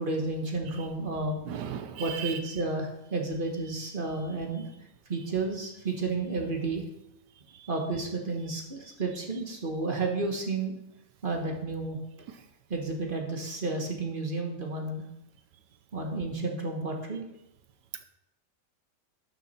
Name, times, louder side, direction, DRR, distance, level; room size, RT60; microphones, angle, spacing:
voice 1, 0.0-1.4 2.0-4.7 5.1-6.8 7.7-10.7 11.2-12.0 12.7-15.0 15.9-17.2, right 3 dB, 35° right, 2 dB, 1.4 m, -31 dB
voice 2, 1.5-2.4, right 8 dB, 85° right, 10 dB, 1.4 m, -36 dB
12.0 x 6.5 x 4.2 m, 0.86 s
omnidirectional pair, 1.8 m